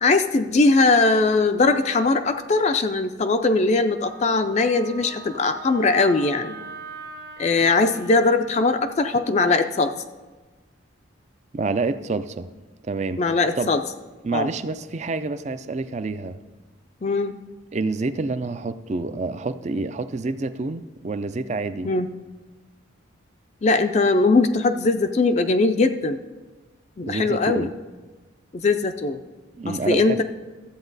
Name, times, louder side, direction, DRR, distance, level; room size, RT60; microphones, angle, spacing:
voice 1, 0.0-6.6 7.4-9.9 13.2-13.8 14.3-14.5 17.0-17.3 21.8-22.1 23.6-26.2 27.0-27.7 28.5-29.2 29.7-30.2, left 3 dB, 35° left, 8 dB, 0.4 m, -20 dB
Wind instrument woodwind instrument, 4.0-8.4, right 2 dB, 50° right, 1.0 m, -41 dB
voice 2, 11.5-12.5 12.8-13.2 13.6-13.7 14.2-16.4 17.7-21.9 27.0-27.7 29.6-30.2, right 3 dB, 35° right, 12 dB, 0.4 m, -28 dB
13.0 x 7.9 x 4.0 m, 1.2 s
head